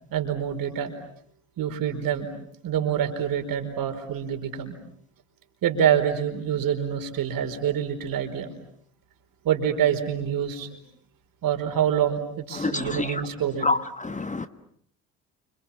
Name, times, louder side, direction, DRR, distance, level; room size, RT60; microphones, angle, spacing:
voice 1, 0.1-0.9 1.6-2.3 2.6-4.8 5.6-8.5 9.4-10.7 11.4-13.7, right 9 dB, 60° right, 4.7 m, -26 dB
voice 2, 12.6-13.2 13.6-14.5, left 3 dB, 20° left, 1.6 m, -27 dB
30.0 x 27.5 x 7.2 m
hypercardioid pair, 55°, 39 cm